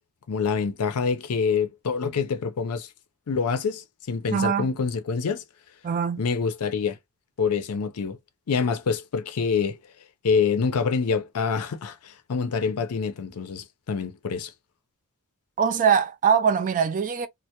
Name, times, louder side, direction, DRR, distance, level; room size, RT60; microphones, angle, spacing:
voice 1, 0.3-2.9 3.3-5.4 6.2-7.0 7.4-8.2 8.5-9.8 10.2-14.5, left 5 dB, 75° left, 0.5 m, -26 dB
voice 2, 4.3-4.7 5.8-6.2 15.6-17.3, right 7 dB, 35° right, 0.3 m, -22 dB
2.2 x 2.1 x 2.7 m
head